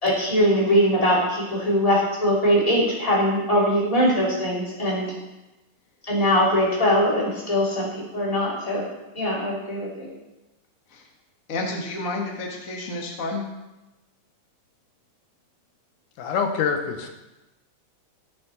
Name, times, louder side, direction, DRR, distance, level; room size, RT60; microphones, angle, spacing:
voice 1, 0.0-5.1 6.1-8.9 9.1-10.1, equal, 10° left, -5 dB, 2.7 m, -21 dB
voice 2, 11.5-13.4, left 2 dB, 35° left, 0 dB, 1.4 m, -30 dB
voice 3, 16.2-17.1, left 6 dB, 90° left, 5 dB, 2.6 m, -25 dB
18.0 x 6.7 x 4.1 m, 1.0 s
omnidirectional pair, 3.5 m